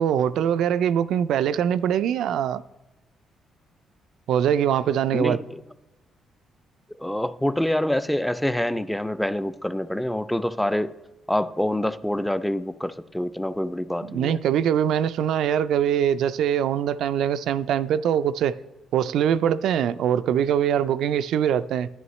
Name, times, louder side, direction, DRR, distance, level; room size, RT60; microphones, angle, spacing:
voice 1, 0.0-2.6 4.3-5.4 14.0-18.6 18.9-21.9, right 9 dB, 80° right, 0.3 m, -23 dB
voice 2, 5.1-5.6 7.0-10.9 11.3-14.4, left 1 dB, 5° left, 0.4 m, -26 dB
11.0 x 10.5 x 3.1 m
cardioid pair, 90°, 0 cm